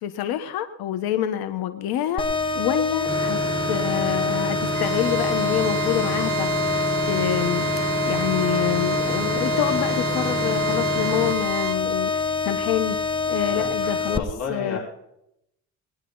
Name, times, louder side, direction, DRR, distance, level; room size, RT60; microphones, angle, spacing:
voice 1, 0.0-2.2 2.5-3.4 3.7-6.7 7.1-7.7 8.1-13.0 13.3-14.2 14.5-14.8, left 11 dB, 75° left, 9 dB, 1.2 m, -26 dB
sound 1, 2.2-14.2, left 4 dB, 15° left, 0.9 m, -26 dB
sound 2, 3.1-11.3, right 5 dB, 35° right, 1.2 m, -29 dB
Bowed string instrument, 4.7-11.8, right 9 dB, 50° right, 1.1 m, -34 dB
voice 2, 13.5-14.8, left 5 dB, 45° left, -3 dB, 4.3 m, -33 dB
20.5 x 10.5 x 3.9 m, 0.78 s
cardioid pair, 120°, 37 cm